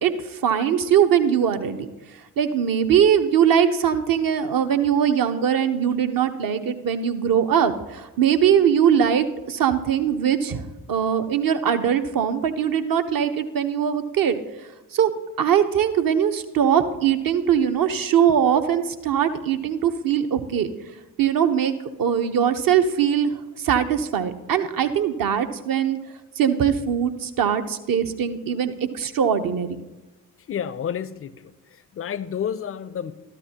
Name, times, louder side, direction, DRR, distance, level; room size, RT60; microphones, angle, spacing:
voice 1, 0.0-1.9 2.4-10.6 10.9-14.4 14.9-15.1 15.4-20.7 21.2-21.7 22.0-26.0 26.4-29.8, right 8 dB, 45° right, 9 dB, 0.9 m, -21 dB
voice 2, 30.5-33.1, left 8 dB, 30° left, 16 dB, 0.5 m, -30 dB
13.0 x 11.5 x 2.9 m, 1.1 s
hypercardioid pair, 40°, 48 cm